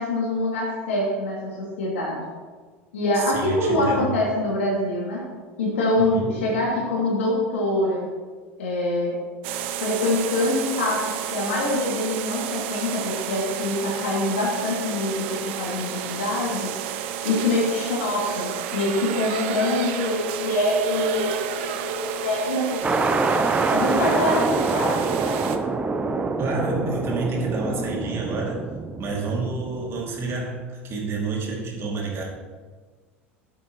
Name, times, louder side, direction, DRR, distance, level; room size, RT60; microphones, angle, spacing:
voice 1, 0.0-2.2 2.9-5.2 5.6-8.1 8.6-9.2 9.8-16.7 17.2-23.1 23.3-25.4, left 1 dB, 70° left, -4 dB, 2.7 m, -25 dB
voice 2, 3.1-4.2 6.0-6.5 26.4-28.7 29.0-32.2, right 3 dB, 40° right, -1 dB, 2.6 m, -29 dB
sound 1, 9.4-25.6, right 9 dB, 60° right, 0.7 m, -31 dB
sound 2, 22.8-30.4, right 3 dB, 20° right, 0.6 m, -25 dB
12.0 x 8.2 x 3.1 m, 1.4 s
figure-of-eight pair, 75°, 7 cm